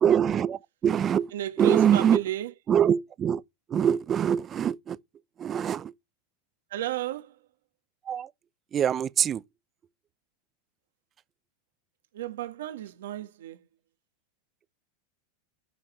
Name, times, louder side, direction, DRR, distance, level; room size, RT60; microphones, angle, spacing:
voice 1, 0.0-1.3 1.6-2.3 2.7-3.4 3.7-5.0 5.4-5.9 8.1-8.3 8.7-9.4, right 8 dB, 25° right, 0.6 m, -24 dB
voice 2, 1.3-2.5 6.7-7.3 12.1-13.6, right 12 dB, 80° right, 1.5 m, -33 dB
9.8 x 5.0 x 7.5 m
supercardioid pair, 135°, 0 cm